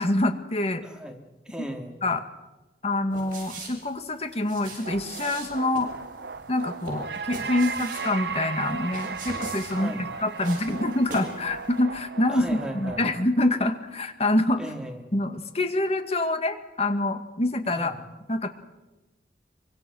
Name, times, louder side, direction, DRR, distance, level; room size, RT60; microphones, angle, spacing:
voice 1, 0.0-0.8 2.0-2.2 2.8-5.9 6.5-14.6 15.1-17.9 18.3-18.5, left 1 dB, 35° left, 7 dB, 2.0 m, -26 dB
voice 2, 0.8-2.0 9.7-10.1 12.3-13.1 14.5-15.1 17.7-18.0, equal, 5° right, 2 dB, 3.0 m, -37 dB
sound 1, 3.1-11.4 11.7-11.8, right 3 dB, 50° right, 7.9 m, -42 dB
sound 2, 4.8-13.2, right 4 dB, 70° right, 0.9 m, -36 dB
25.0 x 24.5 x 6.4 m, 1.1 s
head